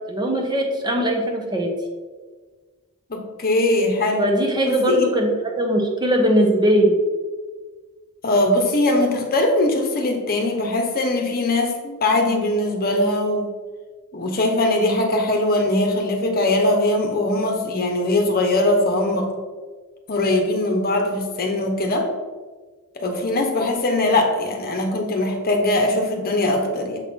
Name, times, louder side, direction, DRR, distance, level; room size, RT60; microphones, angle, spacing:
voice 1, 0.1-1.7 4.2-7.0, equal, 20° right, 1 dB, 0.7 m, -20 dB
voice 2, 3.1-4.3 4.7-5.1 8.2-13.5 14.1-19.3 20.1-22.1 22.9-27.0, left 1 dB, 45° left, 2 dB, 0.9 m, -21 dB
7.4 x 4.3 x 3.6 m, 1.4 s
head